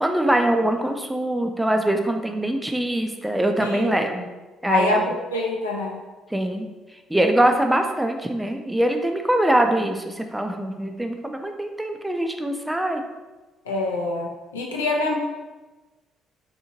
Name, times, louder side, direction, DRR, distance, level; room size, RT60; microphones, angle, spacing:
voice 1, 0.0-4.3 4.6-5.1 6.3-6.7 7.1-13.0, right 1 dB, 10° right, 5 dB, 0.3 m, -23 dB
voice 2, 3.6-3.9 4.7-6.0 13.7-14.3 14.5-15.2, left 2 dB, 80° left, -1 dB, 0.4 m, -25 dB
2.8 x 2.6 x 2.6 m, 1.2 s
figure-of-eight pair, 45°, 0 cm